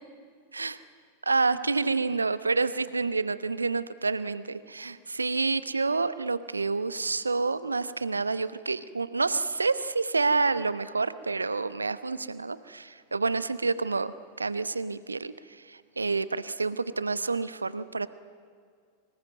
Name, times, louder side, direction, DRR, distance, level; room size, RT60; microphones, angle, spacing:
voice 1, 1.2-18.1, right 3 dB, 80° right, 16 dB, 0.9 m, -28 dB
24.5 x 20.0 x 9.5 m, 2.1 s
figure-of-eight pair, 90°, 0 cm